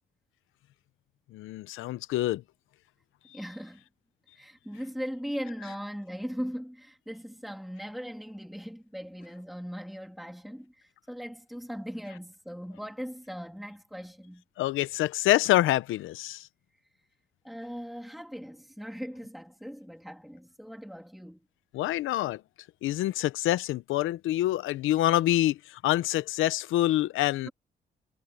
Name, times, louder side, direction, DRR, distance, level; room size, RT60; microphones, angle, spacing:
voice 1, 1.3-2.4 14.6-16.5 21.7-22.4 22.8-27.5, left 15 dB, 85° left, 0.8 m, -26 dB
voice 2, 3.3-3.8 4.3-14.4 17.4-21.4 27.4-27.5, equal, ahead, 3.0 m, -39 dB
cardioid pair, 90°, 20 cm